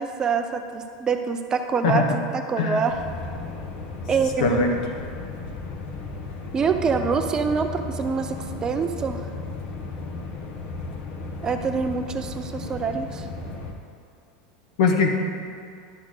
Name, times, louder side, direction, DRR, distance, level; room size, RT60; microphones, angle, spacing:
voice 1, 0.0-2.9 4.1-4.8 6.5-8.4 8.6-9.2 11.4-13.3, right 5 dB, 15° right, 6 dB, 0.4 m, -25 dB
voice 2, 1.8-2.2 2.6-2.8 4.4-4.7 14.8-15.1, left 4 dB, 75° left, 2 dB, 1.3 m, -21 dB
sound 1, 2.9-13.7, left 3 dB, 45° left, 1.0 m, -35 dB
11.0 x 4.0 x 6.4 m, 2.4 s
supercardioid pair, 160°, 4 cm